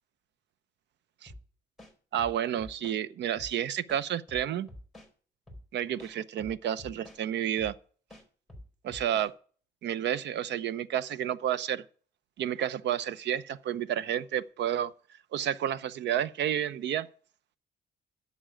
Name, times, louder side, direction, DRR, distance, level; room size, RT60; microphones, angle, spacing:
sound 1, 1.3-1.4 1.8-3.0 3.4-3.5 3.9-5.1 5.5-5.6 6.0-7.2 7.6-7.8 8.1-9.3, left 1 dB, ahead, 4.3 m, -48 dB
voice 1, 2.1-4.7 5.7-7.7 8.8-9.3 9.8-11.8 12.4-14.9 15.3-17.1, right 10 dB, 75° right, 0.8 m, -30 dB
11.5 x 7.0 x 9.1 m
cardioid pair, 160°, 18 cm